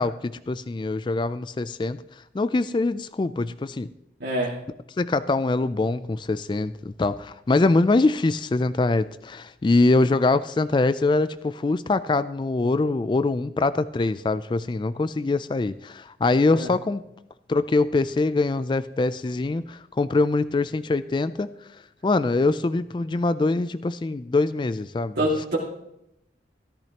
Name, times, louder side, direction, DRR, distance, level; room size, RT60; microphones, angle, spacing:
voice 1, 0.0-2.0 2.3-3.9 5.0-17.0 17.5-21.5 22.0-25.2, left 3 dB, 25° left, 14 dB, 0.3 m, -23 dB
voice 2, 4.2-4.6 16.5-16.7 25.2-25.6, right 1 dB, 70° right, -5 dB, 2.1 m, -25 dB
13.5 x 13.5 x 2.9 m, 0.81 s
head